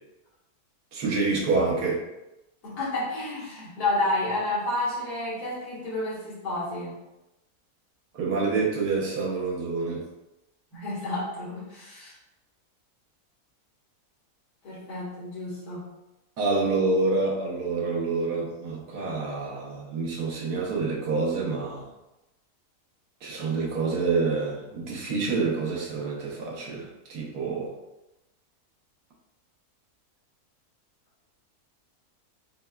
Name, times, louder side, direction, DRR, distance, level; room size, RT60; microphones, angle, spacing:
voice 1, 0.9-2.0 8.1-10.1 16.4-21.9 23.2-27.7, right 3 dB, 85° right, -2 dB, 1.4 m, -27 dB
voice 2, 2.6-7.0 10.7-12.1 14.6-15.8, left 2 dB, 75° left, -8 dB, 2.0 m, -30 dB
6.5 x 2.3 x 2.2 m, 0.95 s
omnidirectional pair, 1.6 m